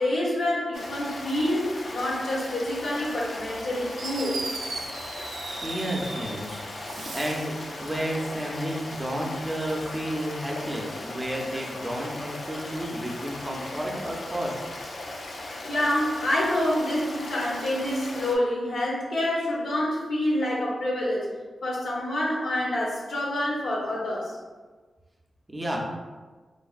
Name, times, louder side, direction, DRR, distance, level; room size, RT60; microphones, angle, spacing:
voice 1, 0.0-4.4 15.7-21.3 21.6-24.4, left 1 dB, 80° left, -4 dB, 0.8 m, -27 dB
Stream, 0.7-18.4, left 2 dB, 60° left, 0.4 m, -38 dB
Fireworks, 4.0-6.4 6.8-7.6, right 3 dB, 85° right, 0.3 m, -37 dB
voice 2, 5.6-14.6 25.5-25.9, equal, 20° right, -1 dB, 0.5 m, -32 dB
3.2 x 2.1 x 2.4 m, 1.3 s
wide cardioid pair, 115°, 0 cm